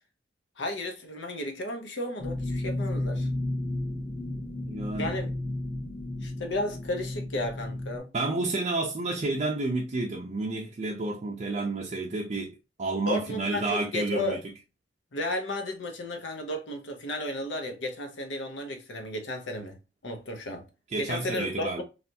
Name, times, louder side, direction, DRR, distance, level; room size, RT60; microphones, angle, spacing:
voice 1, 0.6-3.3 5.0-5.3 6.2-8.1 13.1-14.4 15.1-19.8 20.0-20.7 21.0-21.8, left 1 dB, 85° left, 0.8 m, -33 dB
sound 1, 2.2-8.0, left 1 dB, 30° left, 1.1 m, -33 dB
voice 2, 4.6-5.2 8.1-14.4 20.9-21.8, right 2 dB, 40° right, 0.4 m, -30 dB
3.3 x 2.4 x 2.6 m
head